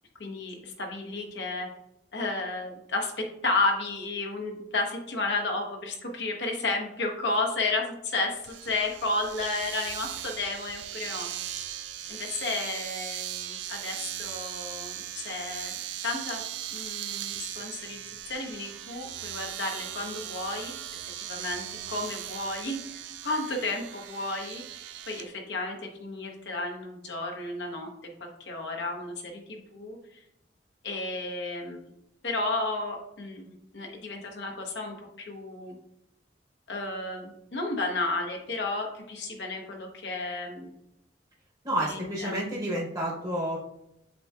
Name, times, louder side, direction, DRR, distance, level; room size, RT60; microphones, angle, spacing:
voice 1, 0.2-1.7 2.1-11.3 12.1-15.7 16.0-16.4 16.7-18.0 18.3-20.7 21.3-24.6 25.1-30.0 30.8-31.8 32.2-33.5 33.7-35.7 36.7-40.7 41.8-42.4, left 2 dB, 75° left, 1 dB, 1.0 m, -32 dB
Domestic sounds home sounds, 8.4-25.3, right 11 dB, 80° right, 0.3 m, -38 dB
voice 2, 41.6-43.6, right 1 dB, 25° right, -4 dB, 0.8 m, -30 dB
7.9 x 2.8 x 2.3 m, 0.82 s
head